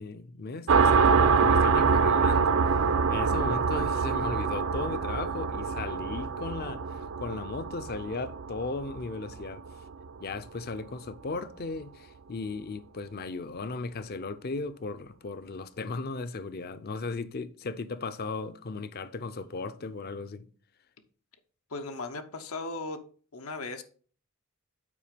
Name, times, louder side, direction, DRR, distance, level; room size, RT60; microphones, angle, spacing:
voice 1, 0.0-2.8 3.1-9.6 10.2-20.4, left 3 dB, 45° left, 0.5 m, -36 dB
sound 1, 0.7-9.9, right 5 dB, 65° right, 0.5 m, -25 dB
voice 2, 21.7-23.0 23.3-23.8, left 3 dB, 90° left, 0.9 m, -37 dB
8.6 x 4.7 x 5.1 m
head